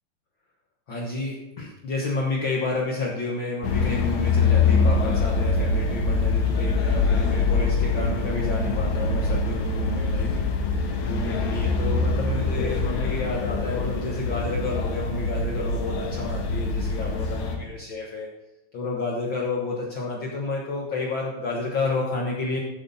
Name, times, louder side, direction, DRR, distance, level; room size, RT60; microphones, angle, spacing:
voice 1, 0.9-10.3 11.0-18.3 18.7-22.6, left 3 dB, 75° left, -2 dB, 1.1 m, -30 dB
sound 1, 3.6-17.6, left 3 dB, 60° left, 2.3 m, -24 dB
14.0 x 7.8 x 4.2 m, 0.93 s
omnidirectional pair, 4.3 m